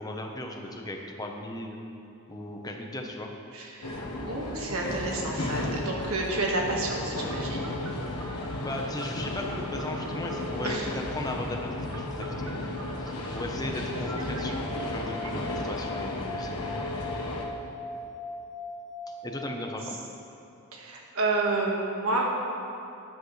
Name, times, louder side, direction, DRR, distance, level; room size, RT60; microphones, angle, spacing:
voice 1, 0.0-1.8 2.3-3.3 8.6-12.6 13.0-16.5 19.2-20.0, left 1 dB, 20° left, 2 dB, 1.0 m, -36 dB
voice 2, 3.5-7.6 10.6-10.9 20.7-22.3, right 2 dB, 70° right, -1 dB, 1.7 m, -30 dB
sound 1, 3.8-17.4, left 1 dB, 90° left, 1.3 m, -34 dB
Telephone, 7.3-10.6 11.9-13.4 13.9-15.6, right 4 dB, 90° right, 0.9 m, -45 dB
sound 2, 14.6-20.1, left 2 dB, 30° right, 2.4 m, -40 dB
13.5 x 10.5 x 3.3 m, 2.6 s
head